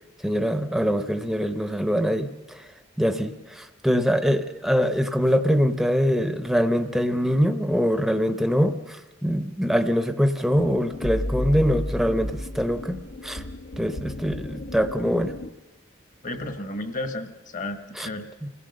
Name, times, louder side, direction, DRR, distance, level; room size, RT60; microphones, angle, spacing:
voice 1, 0.2-2.7 3.0-13.0 13.2-13.4 13.8-15.4 18.0-18.1 18.4-18.5, equal, ahead, 8 dB, 0.8 m, -23 dB
sound 1, 10.5-15.5, left 1 dB, 70° left, 1.1 m, -33 dB
voice 2, 16.2-18.3, left 2 dB, 40° left, 8 dB, 1.3 m, -33 dB
27.5 x 16.5 x 6.6 m, 1.1 s
head